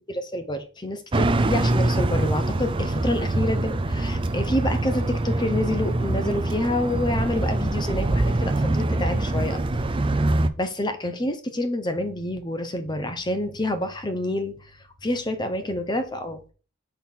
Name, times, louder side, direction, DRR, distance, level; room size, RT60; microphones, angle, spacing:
voice 1, 0.1-9.8 10.6-14.7 15.0-16.5, left 1 dB, 20° left, 8 dB, 0.8 m, -28 dB
sound 1, 1.1-10.5, right 2 dB, 25° right, 0.4 m, -24 dB
6.0 x 4.4 x 5.6 m, 0.36 s
head